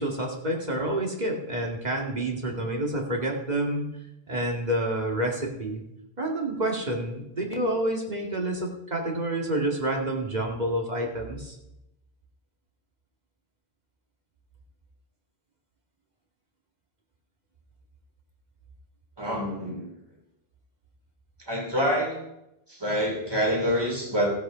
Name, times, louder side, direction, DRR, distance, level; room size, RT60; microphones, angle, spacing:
voice 1, 0.0-3.9 4.3-5.8 6.2-11.6, right 1 dB, 45° right, 1 dB, 2.2 m, -28 dB
voice 2, 19.2-19.8 21.5-22.2 22.7-24.3, equal, 25° right, -1 dB, 3.1 m, -26 dB
15.5 x 8.3 x 5.0 m, 0.88 s
omnidirectional pair, 1.1 m